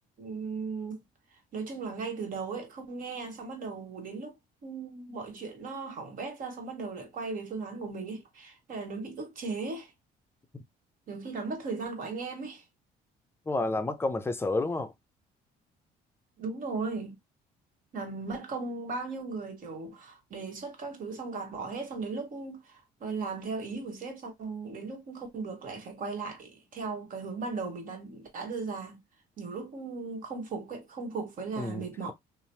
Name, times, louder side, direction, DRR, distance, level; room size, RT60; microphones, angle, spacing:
voice 1, 0.2-1.0 1.5-4.3 4.6-9.9 11.1-12.6 16.4-17.2 17.9-29.0 29.4-32.1, right 4 dB, 55° right, 1.1 m, -37 dB
voice 2, 13.5-14.9 31.6-32.1, left 2 dB, 15° left, 0.5 m, -30 dB
3.0 x 2.0 x 2.8 m
cardioid pair, 110°, 17 cm